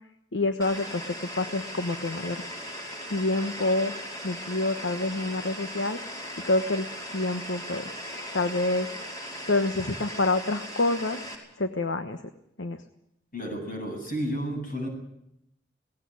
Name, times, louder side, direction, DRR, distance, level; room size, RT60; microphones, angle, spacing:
voice 1, 0.3-2.4 3.1-3.9 4.2-6.0 6.4-6.9 7.1-7.9 8.3-8.9 9.5-11.2 11.6-12.2 12.6-12.8, left 2 dB, 70° left, 8 dB, 1.2 m, -27 dB
sound 1, 0.6-11.4, equal, 20° left, 5.4 m, -38 dB
voice 2, 13.3-14.9, equal, 50° left, 3 dB, 8.0 m, -32 dB
19.0 x 17.0 x 9.6 m, 0.80 s
head